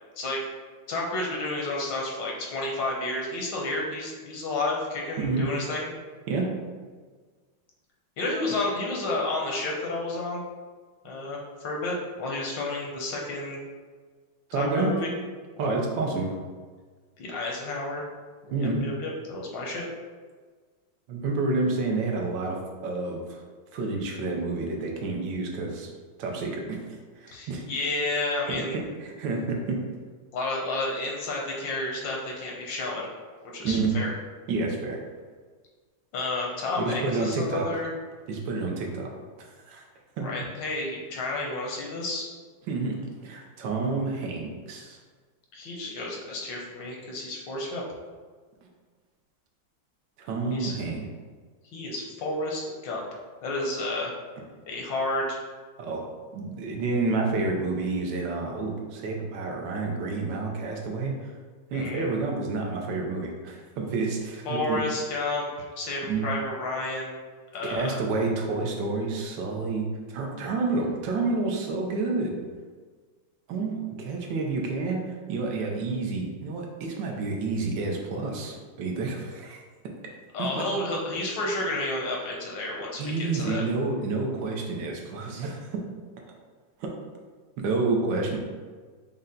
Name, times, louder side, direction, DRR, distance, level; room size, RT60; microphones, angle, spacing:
voice 1, 0.2-0.5 0.9-5.9 8.2-10.4 11.0-13.6 14.5-15.1 17.2-18.0 18.4-19.8 27.3-28.8 30.3-33.1 33.5-34.1 36.1-37.9 40.2-42.3 45.5-47.8 50.5-50.7 51.7-53.0 53.4-54.1 54.7-55.4 61.7-62.1 64.4-67.2 67.5-68.0 80.3-83.6, left 2 dB, 85° left, -2 dB, 1.6 m, -31 dB
voice 2, 5.2-5.5 6.3-6.5 11.0-11.3 14.5-14.9 15.6-16.3 18.5-18.8 21.1-22.6 22.8-23.4 23.7-25.9 26.2-26.8 27.2-27.6 28.5-29.8 33.6-33.9 34.5-35.0 36.8-37.7 38.3-39.1 39.4-39.8 40.2-40.3 42.7-45.0 50.2-51.1 55.8-56.0 56.3-61.3 61.7-64.8 66.1-66.3 67.6-72.4 73.5-75.0 75.3-79.6 80.4-80.6 83.0-85.7 86.8-86.9 87.6-88.4, right 3 dB, 80° right, 0 dB, 1.4 m, -29 dB
5.5 x 2.2 x 3.7 m, 1.5 s
omnidirectional pair, 2.0 m